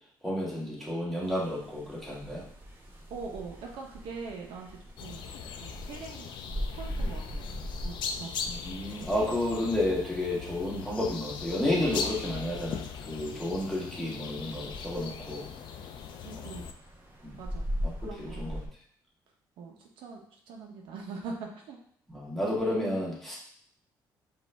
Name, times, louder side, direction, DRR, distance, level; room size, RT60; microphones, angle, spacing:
voice 1, 0.2-2.4 8.5-12.8 13.1-15.5 17.2-17.4 18.2-18.6 22.1-23.4, left 1 dB, 5° left, -6 dB, 1.6 m, -31 dB
sound 1, 1.2-18.7, equal, 25° right, 0.9 m, -41 dB
voice 2, 3.1-5.3 5.6-6.3 6.7-8.4 16.2-16.6 17.4-17.7 18.0-18.5 19.6-21.8, right 4 dB, 85° right, 1 dB, 0.9 m, -42 dB
sound 2, 5.0-16.7, left 6 dB, 70° left, 0.4 m, -39 dB
5.1 x 2.7 x 3.4 m, 0.62 s
cardioid pair, 110°, 8 cm